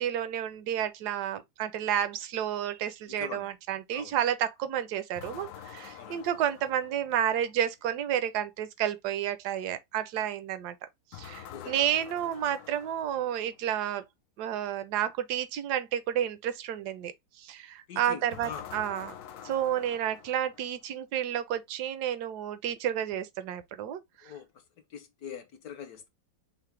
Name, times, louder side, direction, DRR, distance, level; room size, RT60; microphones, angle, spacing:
voice 1, 0.0-10.7 11.1-14.0 14.4-17.1 17.4-19.1 19.4-24.0, right 10 dB, 70° right, 1.0 m, -31 dB
voice 2, 3.1-3.5 3.9-4.2 6.0-6.2 11.5-11.8 17.9-18.7 24.2-24.6 24.9-26.1, left 8 dB, 65° left, 1.0 m, -43 dB
sound 1, 5.1-7.5 11.1-13.6 18.3-20.9, left 9 dB, 85° left, 0.7 m, -47 dB
5.7 x 2.1 x 3.1 m
omnidirectional pair, 2.0 m